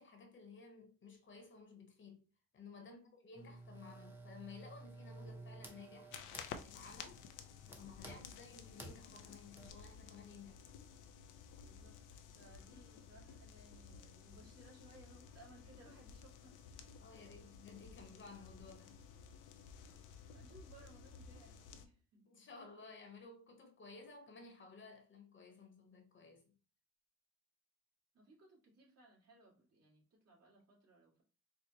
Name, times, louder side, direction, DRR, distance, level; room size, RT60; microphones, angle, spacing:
voice 1, 0.0-2.3 2.5-6.1 6.6-7.2 7.8-10.6 17.0-19.0 22.2-26.6, left 4 dB, 40° left, 0.8 m, -56 dB
voice 2, 2.8-3.1 11.6-12.0 12.4-17.5 17.9-18.1 20.3-22.2 28.1-31.2, right 2 dB, 55° right, 1.9 m, -63 dB
sound 1, 3.3-9.7, right 2 dB, 5° right, 0.7 m, -54 dB
sound 2, 6.1-21.9, left 7 dB, 85° left, 0.5 m, -54 dB
4.6 x 2.1 x 2.8 m
cardioid pair, 90°, 30 cm